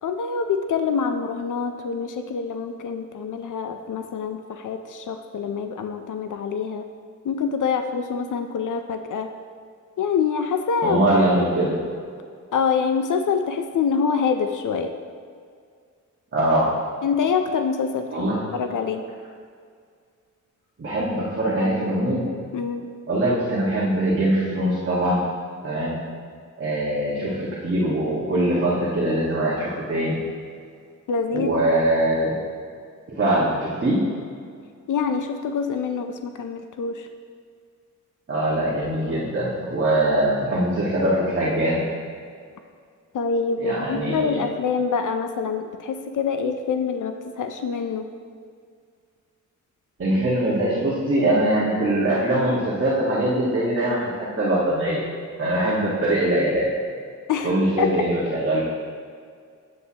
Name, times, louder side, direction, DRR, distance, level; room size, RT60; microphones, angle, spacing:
voice 1, 0.0-6.8 7.2-9.3 10.0-11.1 12.5-14.9 17.0-18.2 18.5-19.0 22.5-22.9 31.1-31.5 34.9-37.1 43.1-48.1 57.3-57.9, left 6 dB, 75° left, 7 dB, 0.5 m, -25 dB
voice 2, 10.8-11.7 16.3-16.7 18.1-18.4 20.8-22.3 23.1-25.2 25.6-26.0 26.6-30.2 31.3-32.3 33.1-34.0 38.3-41.8 43.6-44.4 50.0-55.0 55.4-56.7 57.4-58.6, right 1 dB, 40° right, -8 dB, 1.6 m, -22 dB
8.1 x 7.8 x 2.9 m, 2.1 s
wide cardioid pair, 110°, 31 cm